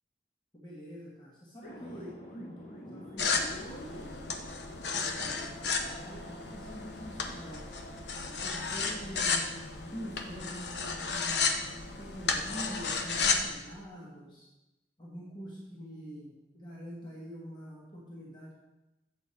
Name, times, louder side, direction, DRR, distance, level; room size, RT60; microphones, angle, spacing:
voice 1, 0.5-4.3 5.2-5.5 5.8-7.6 8.3-11.5 12.0-14.5 15.0-18.5, equal, 25° left, -5 dB, 1.4 m, -45 dB
sound 1, 1.6-8.0, equal, 45° left, 1.6 m, -48 dB
sound 2, 3.2-13.5, left 4 dB, 75° left, 0.8 m, -33 dB
7.9 x 6.4 x 4.3 m, 0.98 s
head